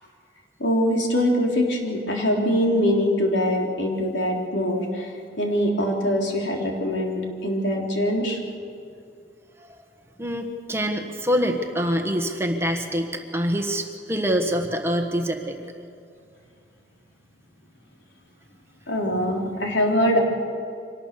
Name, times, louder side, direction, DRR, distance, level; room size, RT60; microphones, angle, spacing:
voice 1, 0.6-8.4 18.9-20.2, equal, 75° left, 0 dB, 3.6 m, -23 dB
voice 2, 10.2-15.6, equal, 15° right, 4 dB, 1.4 m, -25 dB
24.5 x 19.0 x 6.8 m, 2.4 s
head